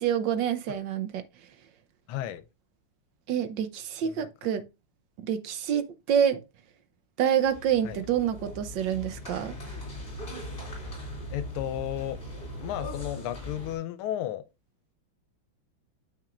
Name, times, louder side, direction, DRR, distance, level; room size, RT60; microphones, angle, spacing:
voice 1, 0.0-1.2 3.3-4.6 5.2-6.4 7.2-9.5, right 9 dB, 70° right, 1.2 m, -27 dB
voice 2, 2.1-2.4 4.0-4.3 7.8-8.0 11.3-12.2 12.5-14.4, left 12 dB, 85° left, 1.5 m, -33 dB
sound 1, 7.4-13.7, left 1 dB, 25° left, 2.8 m, -40 dB
8.9 x 6.0 x 2.4 m
omnidirectional pair, 2.4 m